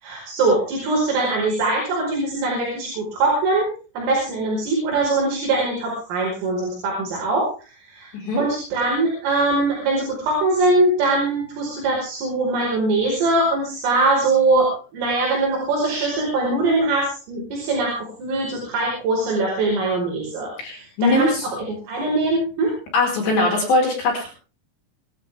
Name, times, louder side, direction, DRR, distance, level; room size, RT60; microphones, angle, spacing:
voice 1, 0.0-3.7 4.0-8.1 8.4-20.5 20.8-22.7, right 2 dB, 75° right, -2 dB, 7.5 m, -22 dB
voice 2, 20.6-21.5 22.9-24.3, left 2 dB, 60° left, 0 dB, 6.5 m, -20 dB
26.5 x 12.5 x 3.5 m, 0.37 s
omnidirectional pair, 6.0 m